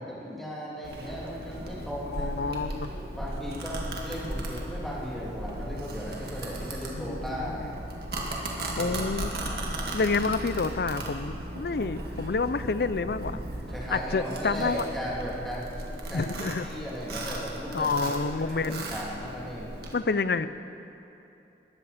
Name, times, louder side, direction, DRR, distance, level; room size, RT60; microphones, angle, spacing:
voice 1, 0.0-2.6 3.2-7.7 8.7-9.0 13.7-15.7 16.1-19.7, equal, ahead, -6 dB, 2.8 m, -37 dB
Domestic sounds home sounds, 0.8-19.9, right 1 dB, 60° right, 2.0 m, -36 dB
voice 2, 2.1-2.9 6.9-7.7 8.8-9.6 9.9-13.4 13.9-14.8 16.1-16.7 17.7-18.9 19.9-20.5, left 4 dB, 60° left, 13 dB, 0.5 m, -29 dB
19.5 x 14.0 x 4.3 m, 2.8 s
head